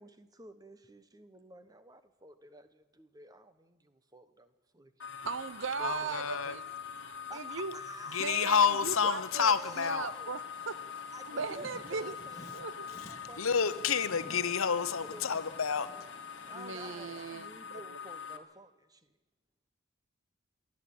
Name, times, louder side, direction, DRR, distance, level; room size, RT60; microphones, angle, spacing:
voice 1, 0.0-4.9 5.8-6.6 7.3-8.3 9.0-10.4 11.1-12.5 12.9-13.4 13.7-13.8 15.0-15.6 16.5-19.1, right 1 dB, 15° right, 1.1 m, -51 dB
sound 1, 5.0-18.4, left 7 dB, 55° left, 1.6 m, -44 dB
voice 2, 5.2-6.6 7.3-7.8 8.2-10.8 11.2-12.1 12.5-12.9 16.5-18.0, right 5 dB, 65° right, 0.8 m, -38 dB
voice 3, 5.8-6.5 8.1-10.1 13.4-15.9, left 6 dB, 80° left, 1.0 m, -29 dB
sound 2, 8.0-17.2, left 1 dB, 20° left, 3.9 m, -55 dB
27.0 x 11.0 x 8.7 m
head